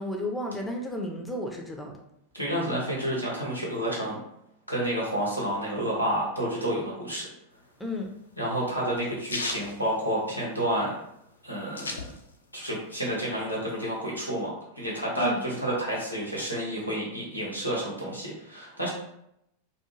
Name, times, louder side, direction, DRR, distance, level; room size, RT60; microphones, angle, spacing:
voice 1, 0.0-1.9 7.8-8.1 15.2-15.4, left 1 dB, 5° left, 1 dB, 0.5 m, -32 dB
voice 2, 2.3-4.2 4.7-7.3 8.4-11.0 11.4-12.1 12.5-14.5 14.8-18.9, right 1 dB, 90° right, -4 dB, 0.9 m, -30 dB
sound 1, 7.6-10.7 11.0-11.1 11.3-12.6 13.0-14.1, left 3 dB, 75° left, 0.3 m, -37 dB
2.4 x 2.3 x 3.0 m, 0.78 s
figure-of-eight pair, 90°, 0 cm